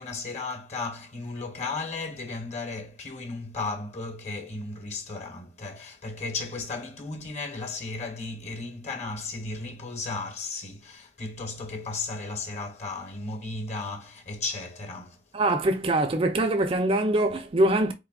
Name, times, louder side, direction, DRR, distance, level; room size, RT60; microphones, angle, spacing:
voice 1, 0.0-15.2, left 3 dB, 40° left, 0.9 m, -35 dB
voice 2, 15.3-17.9, right 1 dB, 30° right, 0.4 m, -23 dB
4.2 x 3.4 x 2.3 m
head